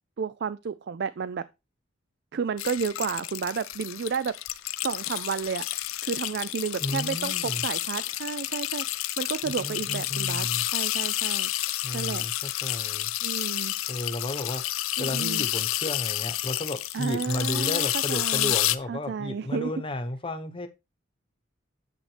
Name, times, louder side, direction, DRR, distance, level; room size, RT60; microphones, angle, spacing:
voice 1, 0.2-1.5 2.3-4.4 4.8-5.7 6.0-12.3 13.2-14.0 15.0-15.5 16.9-18.6 18.9-19.7, right 6 dB, 55° right, 0.4 m, -32 dB
sound 1, 2.6-18.8, left 15 dB, 90° left, 0.6 m, -30 dB
voice 2, 6.8-7.6 9.4-10.6 11.8-13.1 13.9-14.6 15.0-20.7, left 1 dB, 25° left, 1.0 m, -33 dB
9.0 x 7.8 x 3.3 m
head